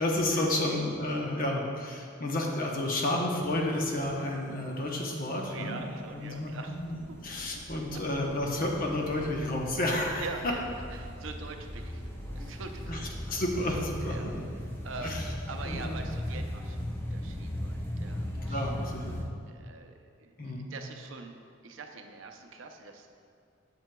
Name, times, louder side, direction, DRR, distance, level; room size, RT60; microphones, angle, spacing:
voice 1, 0.0-5.8 6.1-7.0 7.2-10.2 12.9-13.0 13.3-14.4 15.0-15.2 15.6-16.1 18.5-19.3 20.4-20.7, left 1 dB, 45° left, 0 dB, 0.8 m, -31 dB
sound 1, 3.7-19.3, left 1 dB, 10° left, 0.6 m, -39 dB
voice 2, 5.5-6.8 7.1-7.2 10.2-13.4 14.0-14.4 14.8-15.2 15.5-18.7 19.5-21.4 21.6-23.2, right 3 dB, 70° right, 5 dB, 0.5 m, -44 dB
sound 2, 6.9-14.4, equal, 75° left, 1.6 m, -51 dB
7.6 x 7.5 x 2.2 m, 2.3 s
head